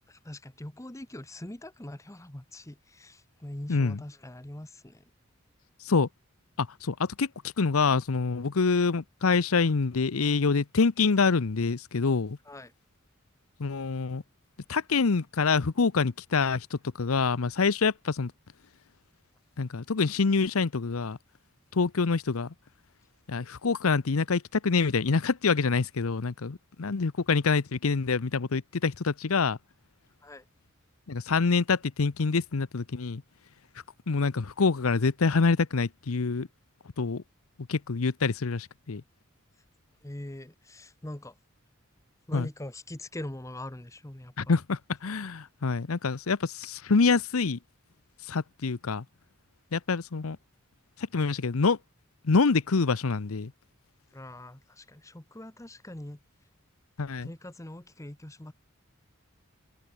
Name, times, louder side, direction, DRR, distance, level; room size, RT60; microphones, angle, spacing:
voice 1, 0.1-5.0 12.4-12.7 30.2-30.4 40.0-41.3 42.3-44.5 54.1-56.2 57.2-58.5, left 1 dB, 15° left, 1.0 m, -42 dB
voice 2, 6.6-12.4 13.6-14.2 14.7-18.3 19.6-21.2 21.7-22.5 23.3-29.6 31.1-33.2 34.1-36.5 37.0-37.2 37.7-39.0 42.3-42.5 44.4-47.6 48.3-49.0 49.7-50.4 51.1-51.8 52.2-53.5 57.0-57.3, left 4 dB, 90° left, 0.8 m, -26 dB
head